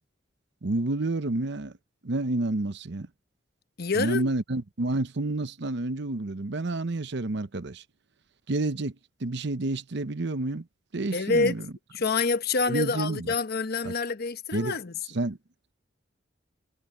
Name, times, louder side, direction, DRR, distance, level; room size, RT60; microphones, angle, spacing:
voice 1, 0.6-1.8 2.0-3.1 3.9-7.8 8.5-8.9 9.2-10.7 10.9-11.7 12.7-13.3 13.8-13.9 14.5-14.7 15.1-15.4, right 2 dB, 65° right, 0.8 m, -29 dB
voice 2, 3.8-4.3 11.1-11.6 11.9-14.9, left 4 dB, 55° left, 1.0 m, -27 dB
head